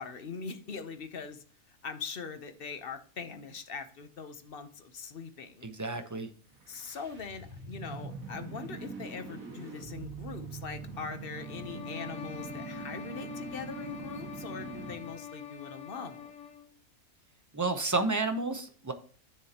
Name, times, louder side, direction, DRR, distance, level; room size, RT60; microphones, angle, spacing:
voice 1, 0.0-5.7 6.7-16.3, left 5 dB, 45° left, 9 dB, 0.9 m, -42 dB
voice 2, 5.6-6.3 17.5-18.9, right 3 dB, 20° right, 7 dB, 0.5 m, -31 dB
sound 1, 6.5-15.1, right 4 dB, 65° right, 2.1 m, -43 dB
sound 2, 11.3-16.7, left 8 dB, 60° left, 1.2 m, -44 dB
9.8 x 7.1 x 2.9 m, 0.43 s
omnidirectional pair, 1.5 m